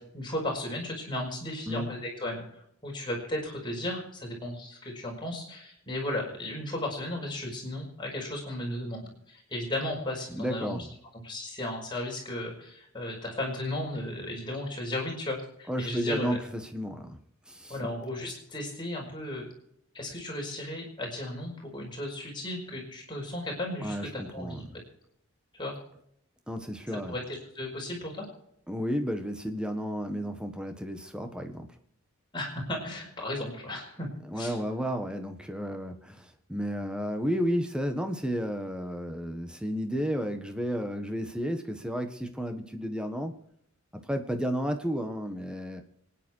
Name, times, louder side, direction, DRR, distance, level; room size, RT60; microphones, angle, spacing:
voice 1, 0.0-10.9 11.1-16.4 17.7-19.4 19.9-24.6 25.5-25.7 26.9-28.3 32.3-34.1 34.3-34.6, left 1 dB, 20° left, -1 dB, 5.6 m, -35 dB
voice 2, 10.3-10.9 15.7-17.2 17.5-17.7 23.8-24.7 26.5-27.2 28.7-31.7 34.3-43.3 44.1-45.8, equal, 5° right, 6 dB, 1.5 m, -32 dB
25.5 x 10.5 x 4.7 m, 0.72 s
head